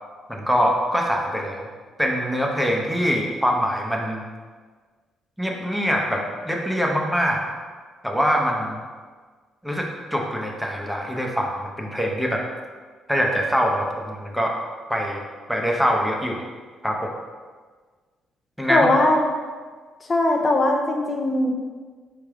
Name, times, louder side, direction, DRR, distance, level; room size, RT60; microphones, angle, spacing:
voice 1, 0.3-1.7 2.0-4.2 5.4-7.4 8.0-8.8 9.6-12.4 13.1-14.5 14.9-15.2 15.5-16.5 16.8-17.1 18.6-18.9, equal, ahead, 0 dB, 0.7 m, -23 dB
voice 2, 18.7-19.2 20.1-21.5, left 2 dB, 35° left, 1 dB, 0.6 m, -20 dB
4.3 x 3.4 x 3.6 m, 1.5 s
cardioid pair, 90°, 0 cm